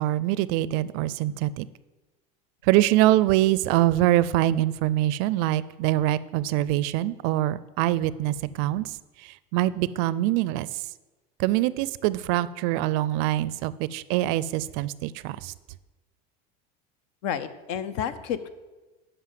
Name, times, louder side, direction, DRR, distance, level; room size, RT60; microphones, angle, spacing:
voice 1, 0.0-1.7 2.6-10.8 11.4-15.5, right 15 dB, 60° right, 18 dB, 0.4 m, -24 dB
voice 2, 17.2-18.5, left 8 dB, 65° left, 13 dB, 0.8 m, -30 dB
9.6 x 5.5 x 7.5 m, 1.2 s
supercardioid pair, 140°, 21 cm